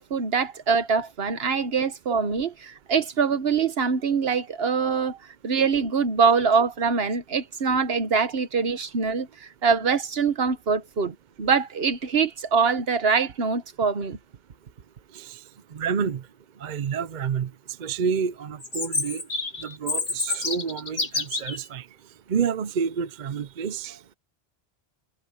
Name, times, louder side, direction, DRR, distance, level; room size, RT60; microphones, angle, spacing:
voice 1, 0.0-5.2 5.4-14.2, right 5 dB, 70° right, 1.4 m, -24 dB
voice 2, 15.7-16.2 16.6-17.5 17.8-19.2 19.6-21.9 22.3-24.1, right 6 dB, 50° right, 0.7 m, -29 dB
Chirp tweet, 18.6-21.6, left 3 dB, 60° left, 2.1 m, -28 dB
omnidirectional pair, 1.1 m